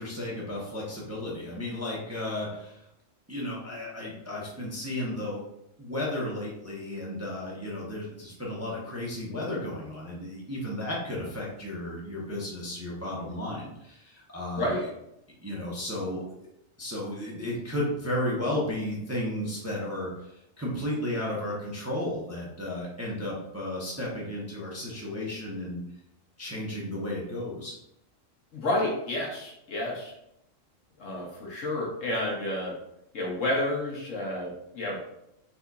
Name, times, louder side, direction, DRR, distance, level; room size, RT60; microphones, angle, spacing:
voice 1, 0.0-2.8 3.3-5.4 5.8-14.7 15.4-16.2 16.8-25.8 26.4-27.7, left 1 dB, 15° right, -5 dB, 0.7 m, -33 dB
voice 2, 28.5-30.1 31.0-32.7 33.1-35.0, left 1 dB, 70° left, -3 dB, 1.5 m, -30 dB
4.2 x 4.0 x 2.4 m, 0.80 s
omnidirectional pair, 1.4 m